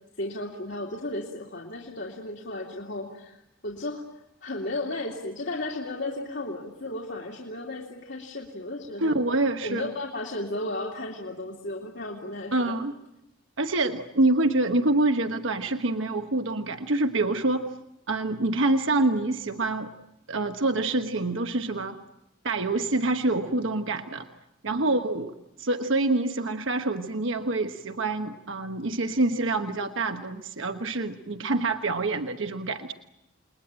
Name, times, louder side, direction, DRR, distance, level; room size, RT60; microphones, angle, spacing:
voice 1, 0.2-3.4 3.6-4.0 4.4-9.1 9.6-12.7 24.7-25.0, left 2 dB, 60° left, -1 dB, 2.7 m, -34 dB
voice 2, 9.0-9.9 12.5-12.9 13.6-17.7 18.1-19.9 20.3-22.0 22.4-24.3 24.6-32.9, right 2 dB, 75° right, 7 dB, 1.2 m, -26 dB
29.5 x 21.5 x 8.9 m, 0.87 s
head